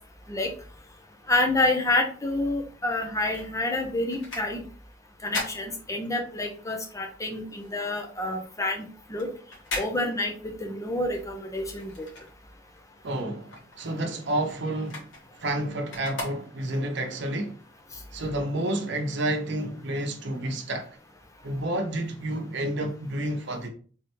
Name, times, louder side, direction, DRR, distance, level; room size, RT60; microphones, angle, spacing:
voice 1, 1.3-4.6 5.2-8.8 9.1-9.3 9.8-12.1, left 2 dB, 15° left, 0.7 m, -28 dB
sound 1, 2.9-6.5 6.9-12.8 13.2-16.9 17.5-17.6, left 2 dB, 85° left, 1.7 m, -40 dB
voice 2, 13.0-15.1 15.4-17.6 18.1-21.0 21.4-23.7, right 1 dB, 65° right, 0.8 m, -30 dB
3.4 x 3.3 x 3.0 m
head